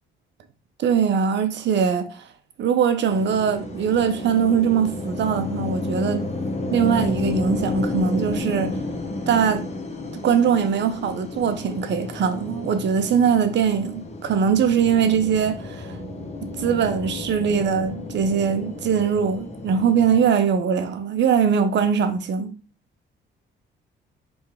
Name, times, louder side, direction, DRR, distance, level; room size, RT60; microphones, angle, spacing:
voice 1, 0.8-2.3 2.6-6.3 6.7-8.8 9.3-9.7 10.2-15.9 16.6-22.6, right 7 dB, 65° right, 0.8 m, -21 dB
sound 1, 3.1-20.3, left 2 dB, 35° left, 1.0 m, -31 dB
4.3 x 3.3 x 3.5 m
cardioid pair, 90°, 20 cm